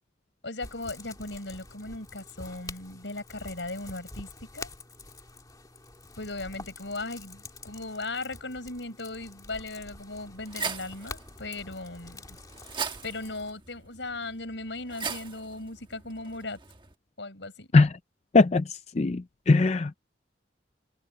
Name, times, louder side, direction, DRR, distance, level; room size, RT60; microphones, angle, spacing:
voice 1, 0.4-4.7 6.2-12.4 13.0-16.6 17.2-17.7, left 2 dB, 80° left, 5.8 m, -37 dB
sound 1, 0.6-13.5, left 3 dB, 20° left, 2.3 m, -46 dB
sound 2, 10.1-16.9, right 5 dB, 25° right, 1.3 m, -40 dB
voice 2, 18.3-18.6 19.0-19.9, left 3 dB, 35° left, 0.4 m, -20 dB
head